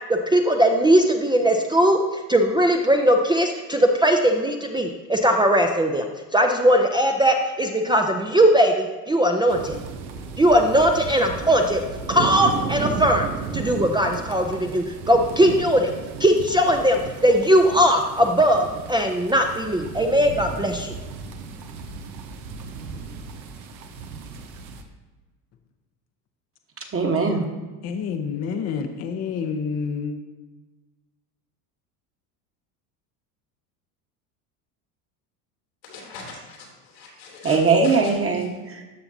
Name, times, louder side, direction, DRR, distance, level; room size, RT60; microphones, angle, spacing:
voice 1, 0.1-9.8 10.4-11.8 12.1-15.9 16.2-20.9, equal, 10° right, 0.5 m, -19 dB
sound 1, 9.5-24.8, right 5 dB, 90° right, 1.0 m, -34 dB
voice 2, 26.9-27.4 37.4-38.8, right 4 dB, 25° right, 1.2 m, -20 dB
voice 3, 27.8-30.1, left 6 dB, 30° left, 0.7 m, -28 dB
voice 4, 35.9-37.6 37.8-38.4, left 4 dB, 90° left, 2.9 m, -41 dB
13.0 x 5.7 x 2.7 m
hypercardioid pair, 90°, 50 cm